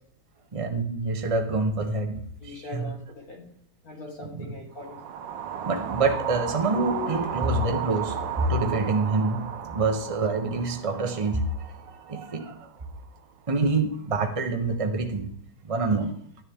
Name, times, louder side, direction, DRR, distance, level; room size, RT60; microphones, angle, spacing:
voice 1, 0.5-2.9 4.2-4.5 5.6-12.7 13.5-15.3 15.6-16.1, right 3 dB, 50° right, 3 dB, 0.4 m, -27 dB
voice 2, 2.4-3.5 3.8-5.0 6.7-7.4, left 3 dB, 45° left, 0 dB, 2.4 m, -37 dB
sound 1, 4.8-13.0, right 9 dB, 65° right, 1.5 m, -35 dB
12.0 x 10.0 x 3.7 m, 0.63 s
omnidirectional pair, 2.3 m